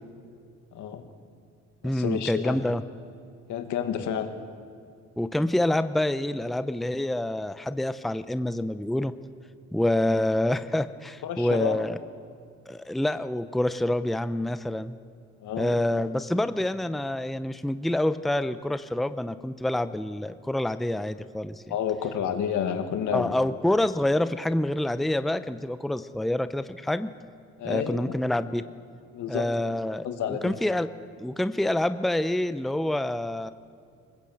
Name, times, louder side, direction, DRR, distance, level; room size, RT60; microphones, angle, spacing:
voice 1, 0.7-1.0 1.8-2.7 3.5-4.3 11.2-11.9 15.4-15.8 21.7-23.3 27.6-28.1 29.1-29.7 30.0-30.6, left 8 dB, 80° left, 6 dB, 2.0 m, -30 dB
voice 2, 1.8-2.8 5.2-9.1 9.7-12.0 12.7-15.0 15.6-21.6 23.1-27.1 27.6-28.6 29.3-30.9 31.2-33.5, left 1 dB, ahead, 12 dB, 0.7 m, -27 dB
21.0 x 20.0 x 7.9 m, 2.4 s
cardioid pair, 90°, 30 cm